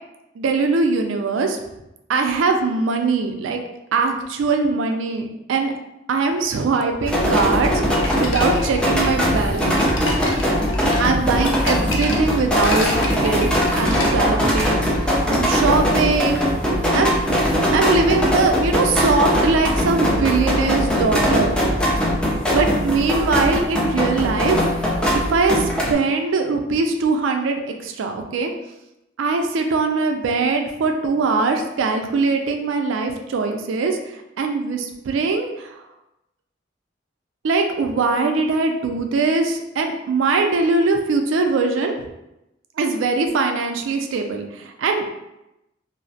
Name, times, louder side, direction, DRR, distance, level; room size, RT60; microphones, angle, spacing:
voice 1, 0.4-1.6 2.1-3.6 3.9-5.7 6.1-9.9 11.0-16.4 16.9-17.2 17.7-21.6 22.5-24.6 25.3-28.5 29.2-35.8 37.4-42.0 42.8-45.0, right 4 dB, 80° right, 4 dB, 0.3 m, -21 dB
sound 1, 7.0-25.9, equal, 5° left, 0.4 m, -20 dB
sound 2, 7.7-14.7, left 2 dB, 65° left, 0.4 m, -30 dB
2.5 x 2.0 x 2.6 m, 0.90 s
head